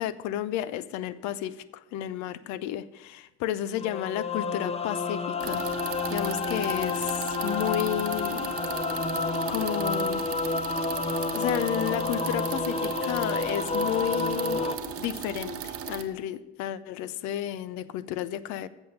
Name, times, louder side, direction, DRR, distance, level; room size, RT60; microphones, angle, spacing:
voice 1, 0.0-5.6 6.1-8.5 9.5-10.2 11.3-18.7, left 11 dB, 60° left, 0.5 m, -32 dB
sound 1, 3.8-14.8, left 3 dB, 20° left, 0.7 m, -30 dB
sound 2, 5.4-16.0, right 8 dB, 45° right, 1.0 m, -37 dB
7.6 x 7.0 x 6.5 m
hypercardioid pair, 70°, 31 cm